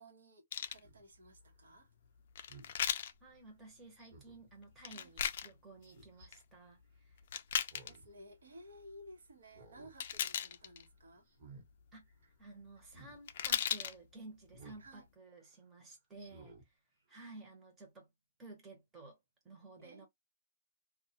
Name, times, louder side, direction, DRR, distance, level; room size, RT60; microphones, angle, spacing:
voice 1, 0.0-1.9 4.9-5.1 7.8-11.3 14.6-15.0 19.8-20.1, equal, 85° right, 1.0 m, -56 dB
sound 1, 0.5-0.8 2.4-3.1 4.8-5.5 6.0-6.4 7.2-8.0 10.0-10.8 13.0-13.1 13.3-13.9 14.5-14.6, left 9 dB, 50° left, 0.4 m, -36 dB
Speech synthesizer, 0.8-1.0 2.5-2.8 4.0-4.5 5.8-6.3 7.6-8.1 8.5-8.6 9.4-9.9 10.3-10.6 11.3-11.7 12.9-13.2 14.5-14.9 15.3-15.5 16.1-16.6 17.1-17.2, right 3 dB, 45° right, 1.2 m, -57 dB
voice 2, 3.2-7.2 11.9-16.8 17.1-18.1 18.4-19.2 19.4-20.1, right 2 dB, 10° right, 0.9 m, -54 dB
2.5 x 2.3 x 2.8 m
hypercardioid pair, 160°, 0 cm